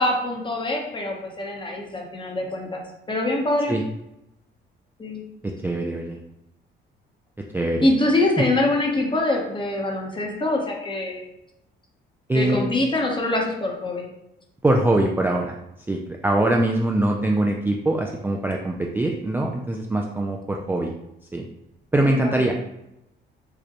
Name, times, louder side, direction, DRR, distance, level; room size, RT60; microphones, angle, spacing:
voice 1, 0.0-2.8 3.1-3.8 5.0-5.2 7.8-11.2 12.3-14.1 22.0-22.5, left 2 dB, 25° left, 0 dB, 0.9 m, -24 dB
voice 2, 5.4-6.2 7.5-7.9 8.4-8.5 12.3-12.6 14.6-15.6 15.9-20.9 21.3-21.5 21.9-22.5, right 1 dB, 10° right, 0 dB, 0.3 m, -23 dB
4.9 x 2.2 x 2.9 m, 0.87 s
cardioid pair, 90°, 20 cm